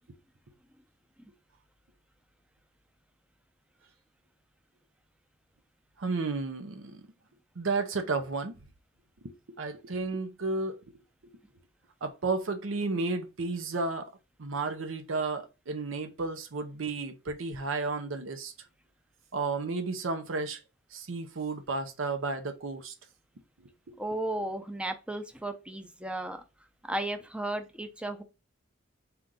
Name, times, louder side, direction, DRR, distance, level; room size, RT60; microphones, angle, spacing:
voice 1, 6.0-7.0 7.6-8.6 9.2-10.8 11.2-11.3 12.0-14.1 14.4-18.5 19.3-20.6 20.9-22.9 23.9-24.0, right 3 dB, 85° right, 0.7 m, -32 dB
voice 2, 24.0-26.4 26.9-28.2, right 1 dB, 5° right, 0.6 m, -34 dB
4.4 x 2.6 x 3.7 m
head